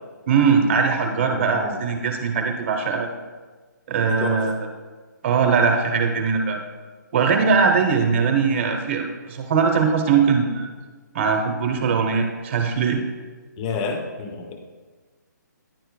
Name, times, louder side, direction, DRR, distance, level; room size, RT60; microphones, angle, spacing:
voice 1, 0.3-3.1 3.9-4.5 5.2-6.6 7.1-10.7 11.1-13.0, right 5 dB, 35° right, 3 dB, 0.9 m, -20 dB
voice 2, 1.3-1.8 4.1-4.4 13.6-14.6, left 4 dB, 20° left, 4 dB, 0.4 m, -30 dB
10.5 x 4.4 x 2.2 m, 1.4 s
hypercardioid pair, 160°, 10 cm